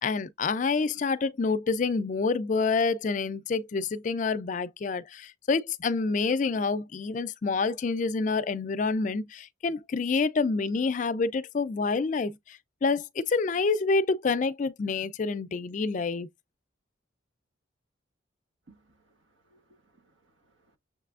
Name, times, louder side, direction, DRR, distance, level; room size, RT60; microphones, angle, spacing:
voice 1, 0.0-16.3, left 4 dB, 40° left, 0.3 m, -27 dB
voice 2, 18.7-20.8, right 2 dB, 80° right, 1.0 m, -63 dB
6.6 x 3.2 x 2.4 m
head